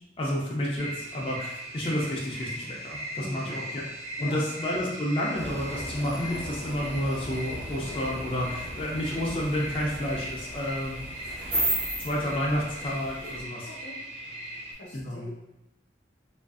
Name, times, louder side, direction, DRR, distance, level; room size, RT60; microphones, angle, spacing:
voice 1, 0.2-3.8 4.2-11.0 11.4-11.6 12.0-13.7 14.9-15.2, equal, 30° left, -4 dB, 0.3 m, -30 dB
sound 1, 0.8-14.7, equal, 35° right, 0.4 m, -39 dB
voice 2, 3.2-3.5 4.2-4.4 12.8-13.0 13.7-14.0 14.7-15.3, left 1 dB, 80° left, -2 dB, 0.6 m, -43 dB
sound 2, 5.3-13.4, right 1 dB, 55° right, 0.8 m, -35 dB
2.4 x 2.3 x 2.3 m, 0.94 s
head